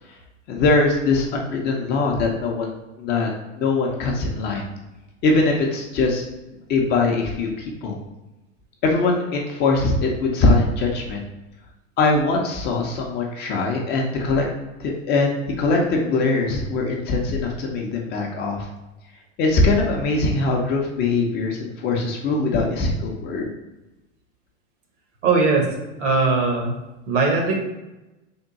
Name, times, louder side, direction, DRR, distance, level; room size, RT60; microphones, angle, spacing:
voice 1, 0.5-2.7 3.0-4.7 5.2-8.0 8.8-11.2 12.0-14.5 14.8-18.7 19.4-23.5, left 3 dB, 25° left, 0 dB, 0.5 m, -22 dB
voice 2, 25.2-26.7 27.1-27.6, right 3 dB, 70° right, 1 dB, 1.2 m, -20 dB
3.6 x 2.2 x 3.9 m, 1.0 s
hypercardioid pair, 130°, 38 cm